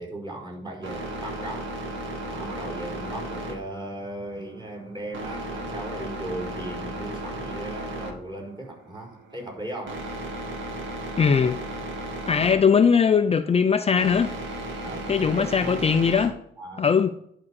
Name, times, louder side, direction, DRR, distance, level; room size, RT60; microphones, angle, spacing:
voice 1, 0.0-1.8 2.2-10.0 14.8-15.8 16.6-16.9, right 1 dB, 20° right, 4.9 m, -37 dB
sound 1, 0.8-16.3, right 1 dB, 75° right, 2.3 m, -35 dB
voice 2, 11.2-11.6 12.3-14.3 15.1-16.4 16.8-17.1, left 6 dB, 30° left, 0.5 m, -20 dB
11.0 x 4.9 x 6.6 m
cardioid pair, 90°, 20 cm